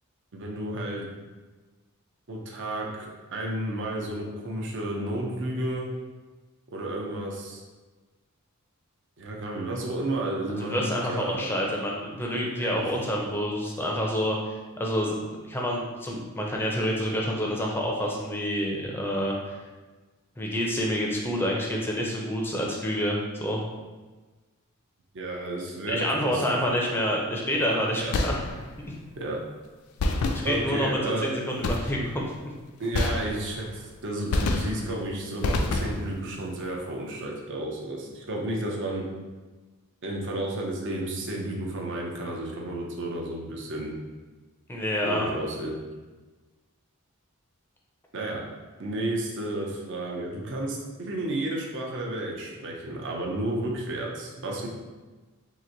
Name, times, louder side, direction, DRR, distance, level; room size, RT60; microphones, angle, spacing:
voice 1, 0.3-1.0 2.3-5.9 6.7-7.6 9.2-11.5 12.6-12.9 25.1-26.6 27.9-28.1 29.2-29.4 30.4-31.3 32.8-39.1 40.0-43.9 45.0-45.8 48.1-48.4 48.8-54.7, right 1 dB, 55° right, -1 dB, 0.6 m, -32 dB
voice 2, 10.6-19.6 20.4-23.6 25.9-28.4 30.3-32.3 44.7-45.3, equal, 10° left, -2 dB, 0.5 m, -28 dB
sound 1, 28.1-28.8 30.0-30.9 31.6-32.2 32.9-33.7 34.3-35.0 35.4-36.2, left 2 dB, 90° left, 0.4 m, -28 dB
3.0 x 2.5 x 3.8 m, 1.3 s
head